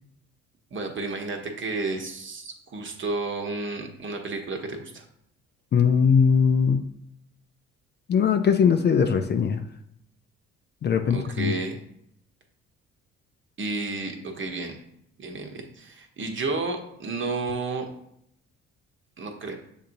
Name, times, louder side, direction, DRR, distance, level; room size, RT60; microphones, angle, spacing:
voice 1, 0.7-5.0 11.1-11.8 13.6-14.8 15.2-17.9 19.2-19.6, right 3 dB, 40° right, 3 dB, 0.9 m, -31 dB
voice 2, 5.7-6.8 8.1-9.6 10.8-11.5, left 6 dB, 35° left, 7 dB, 0.4 m, -20 dB
6.6 x 2.8 x 2.6 m, 0.73 s
supercardioid pair, 60°, 30 cm